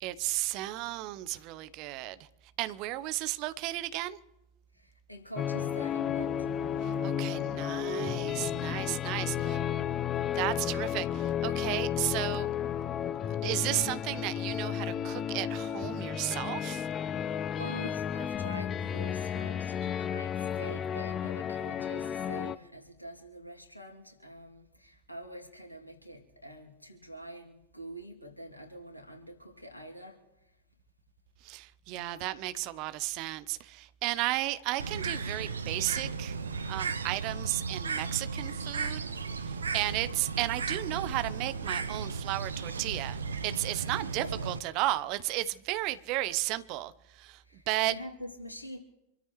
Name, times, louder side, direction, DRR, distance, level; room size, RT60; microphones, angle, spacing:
voice 1, 0.0-2.2 2.6-4.2 6.8-9.6 10.3-12.5 13.4-16.9 31.4-36.4 36.7-39.0 39.4-43.2 43.4-47.9, right 17 dB, 40° right, 0.8 m, -34 dB
voice 2, 4.7-6.5 8.9-9.9 17.1-30.2 44.2-44.6 47.4-48.8, equal, 85° left, 2.8 m, -45 dB
sound 1, 5.4-22.6, left 9 dB, 25° left, 0.5 m, -33 dB
Bird, 34.8-44.6, right 5 dB, 70° right, 0.8 m, -35 dB
27.0 x 13.5 x 3.2 m
figure-of-eight pair, 90°, 0 cm